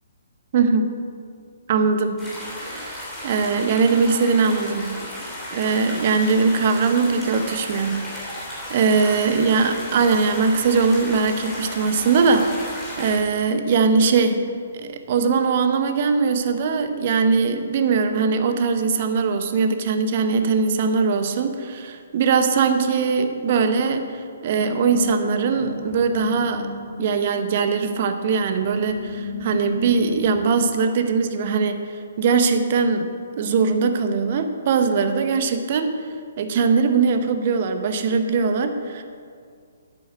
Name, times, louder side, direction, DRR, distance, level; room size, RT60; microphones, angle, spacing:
voice 1, 1.7-2.2 2.7-3.0 3.2-5.0 5.5-14.5 14.7-26.7 27.0-31.8 32.2-33.1 33.4-36.0 36.4-39.0, right 5 dB, 45° right, 8 dB, 1.0 m, -21 dB
sound 1, 2.2-13.2, left 1 dB, 10° left, 3.4 m, -34 dB
sound 2, 24.5-30.5, left 2 dB, 20° right, 3.3 m, -34 dB
9.7 x 8.5 x 6.6 m, 2.2 s
figure-of-eight pair, 130°, 0 cm